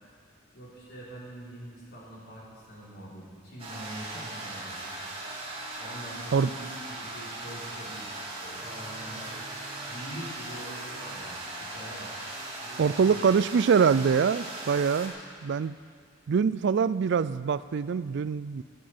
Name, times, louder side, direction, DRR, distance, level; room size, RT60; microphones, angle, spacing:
voice 1, 0.5-4.9 5.8-9.5 9.9-12.1 12.6-13.2, right 1 dB, 55° left, -6 dB, 4.0 m, -44 dB
sound 1, 3.6-15.1, right 2 dB, 30° right, 2.2 m, -39 dB
voice 2, 12.8-15.1 15.4-15.7 16.3-18.6, right 6 dB, 60° right, 16 dB, 0.4 m, -24 dB
13.5 x 8.6 x 7.8 m, 2.1 s
head